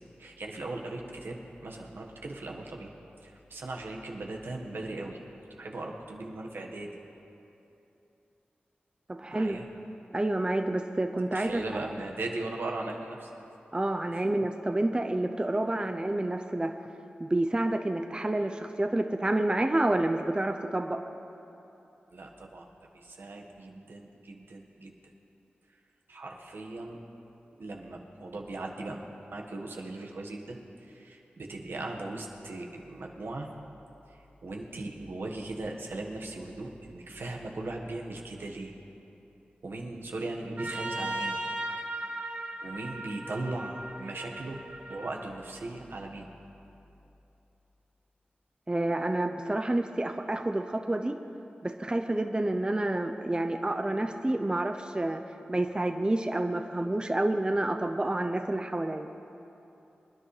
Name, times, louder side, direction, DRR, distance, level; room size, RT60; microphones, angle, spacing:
voice 1, 0.0-2.9 3.2-5.2 5.6-6.9 9.2-9.7 11.3-13.3 14.1-14.2 22.1-22.7 22.9-24.9 26.1-27.0 27.6-33.5 34.1-38.7 39.6-41.4 42.6-44.6 44.9-46.3, right 2 dB, 80° right, 0 dB, 1.5 m, -38 dB
voice 2, 9.1-9.6 10.1-11.6 13.7-16.7 17.2-21.0 48.7-51.2 51.6-55.2 55.5-59.1, right 1 dB, 25° right, 5 dB, 0.6 m, -29 dB
Trumpet, 40.6-45.1, right 1 dB, 60° right, 3.9 m, -37 dB
25.5 x 10.5 x 3.3 m, 2.9 s
cardioid pair, 50°, 4 cm